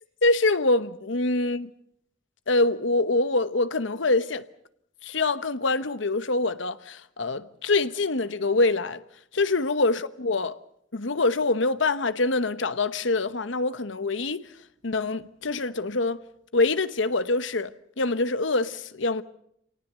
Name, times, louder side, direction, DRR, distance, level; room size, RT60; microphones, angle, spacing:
voice 1, 0.2-1.7 2.5-4.4 5.0-9.0 9.3-10.6 10.9-14.5 14.8-16.2 16.5-17.7 18.0-19.2, left 2 dB, 75° left, 1.0 m, -25 dB
27.0 x 18.5 x 6.8 m
head